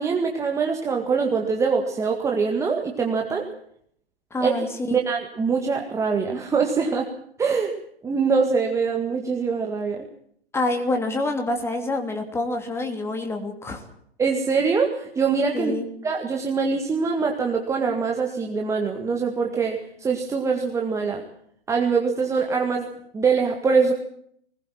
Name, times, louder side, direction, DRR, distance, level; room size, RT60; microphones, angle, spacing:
voice 1, 0.0-3.4 4.4-7.1 7.4-7.7 8.0-10.1 14.2-15.7 16.0-21.2 21.7-23.9, right 5 dB, 10° right, 2 dB, 1.8 m, -23 dB
voice 2, 4.3-5.0 10.5-13.8 15.5-15.9, left 2 dB, 10° left, 4 dB, 3.1 m, -27 dB
20.5 x 20.0 x 7.4 m, 0.66 s
figure-of-eight pair, 115°, 31 cm